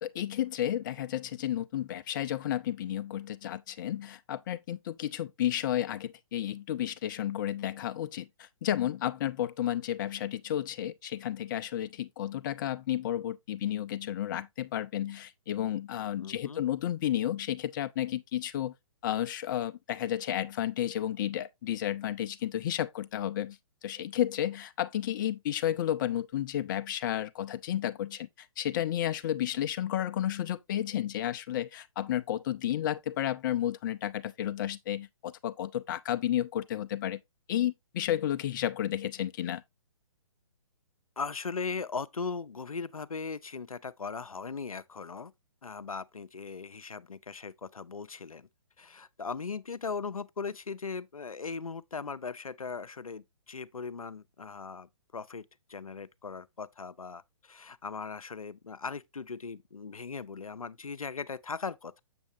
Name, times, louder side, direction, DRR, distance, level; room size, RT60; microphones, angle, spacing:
voice 1, 0.0-18.7 19.0-37.2 37.5-39.6, left 11 dB, 35° left, 0.6 m, -32 dB
voice 2, 16.2-16.6 41.2-45.3 45.6-48.5 48.8-55.4 55.7-62.0, left 5 dB, 85° left, 0.6 m, -39 dB
7.4 x 7.1 x 2.6 m
figure-of-eight pair, 130°, 18 cm